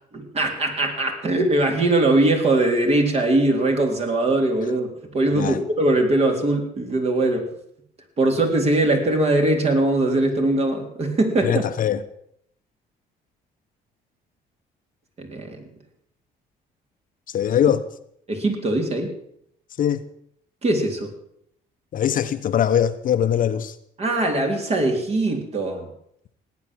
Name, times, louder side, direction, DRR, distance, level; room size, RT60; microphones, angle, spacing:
voice 1, 0.1-7.5 8.2-11.6 15.2-15.7 18.3-19.1 20.6-21.1 24.0-25.9, right 2 dB, 40° right, 3.7 m, -21 dB
voice 2, 11.4-12.0 17.3-17.9 19.8-20.0 21.9-23.8, left 9 dB, 55° left, 1.1 m, -21 dB
17.5 x 9.7 x 7.6 m
cardioid pair, 110°, 17 cm